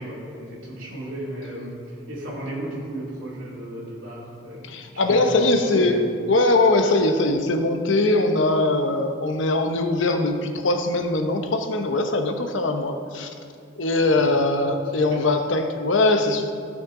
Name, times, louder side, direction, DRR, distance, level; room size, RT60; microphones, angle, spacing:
voice 1, 0.0-4.8 5.0-6.1 14.1-14.3 14.9-15.3, equal, 80° right, -7 dB, 2.6 m, -34 dB
voice 2, 4.7-6.0 6.3-13.3 13.7-16.5, left 2 dB, 75° left, 5 dB, 0.9 m, -21 dB
16.0 x 6.4 x 3.8 m, 2.3 s
head